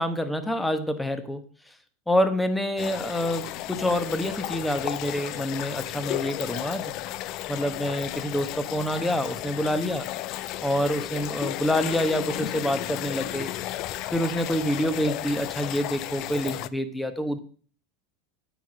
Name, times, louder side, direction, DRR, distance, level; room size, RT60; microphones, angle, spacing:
voice 1, 0.0-1.4 2.1-6.9 7.5-10.1 10.6-13.5 14.1-17.4, equal, 5° left, 9 dB, 1.1 m, -27 dB
sound 1, 2.8-16.7, left 15 dB, 50° left, 0.4 m, -34 dB
8.9 x 4.7 x 6.2 m, 0.43 s
supercardioid pair, 120°, 0 cm